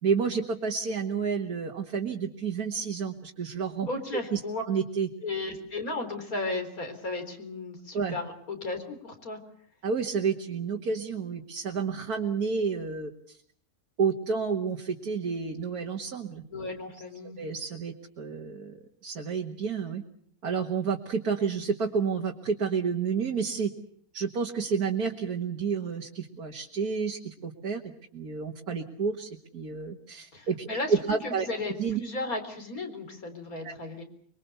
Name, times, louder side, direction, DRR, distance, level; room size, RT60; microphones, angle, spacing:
voice 1, 0.0-3.9 4.3-4.4 4.7-5.1 7.9-8.2 9.8-13.4 14.0-16.4 17.4-18.8 19.0-20.0 20.4-23.7 24.1-30.6 30.9-31.5 31.8-32.0 33.6-33.8, right 5 dB, 85° right, 2 dB, 2.2 m, -30 dB
voice 2, 3.9-4.6 5.2-9.4 16.5-17.4 30.3-30.9 31.2-34.0, left 2 dB, 70° left, 6 dB, 4.4 m, -35 dB
24.5 x 23.5 x 6.9 m, 0.62 s
omnidirectional pair, 1.6 m